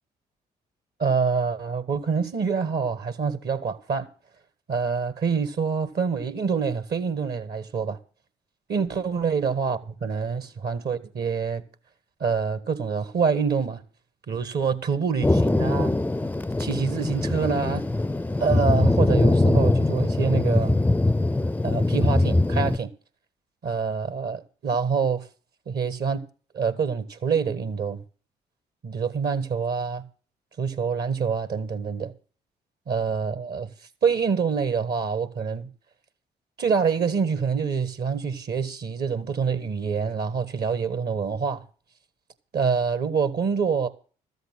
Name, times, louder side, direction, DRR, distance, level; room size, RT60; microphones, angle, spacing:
voice 1, 1.0-4.1 4.7-8.0 8.7-11.6 12.2-13.8 14.3-15.9 16.6-17.8 18.4-20.8 21.6-22.9 23.6-25.3 25.7-26.2 26.5-28.0 28.8-30.0 30.6-32.1 32.9-33.7 34.0-35.7 36.6-41.6 42.5-43.9, right 5 dB, 55° right, 1.5 m, -26 dB
Thunder, 15.2-22.8, left 2 dB, 10° left, 0.5 m, -22 dB
13.5 x 8.1 x 6.2 m
hypercardioid pair, 45°, 20 cm